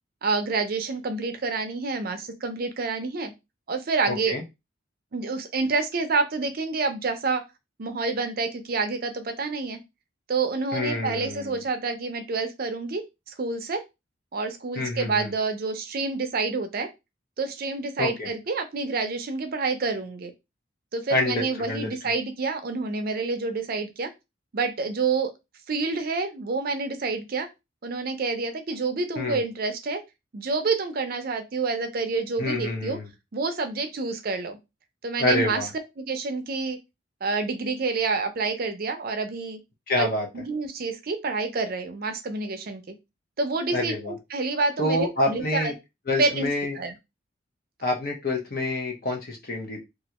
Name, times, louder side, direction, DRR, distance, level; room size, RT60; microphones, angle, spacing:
voice 1, 0.2-3.3 3.7-4.4 5.1-7.4 7.8-9.8 10.3-13.8 14.3-16.9 17.4-20.3 20.9-24.1 24.5-25.3 25.7-27.5 27.8-30.0 30.3-33.0 33.3-34.6 35.0-35.7 36.0-36.8 37.2-39.6 40.0-40.1 40.3-42.9 43.4-45.7 46.2-46.5 46.7-46.9, right 4 dB, 50° right, 8 dB, 0.5 m, -28 dB
voice 2, 4.1-4.4 10.7-11.6 14.8-15.3 18.0-18.3 21.1-22.1 29.2-29.4 32.4-33.1 35.2-35.7 39.9-40.3 43.7-44.1 44.8-45.7 46.1-46.8 47.8-49.8, left 2 dB, 50° left, 2 dB, 0.9 m, -27 dB
3.0 x 2.5 x 2.9 m, 0.23 s
head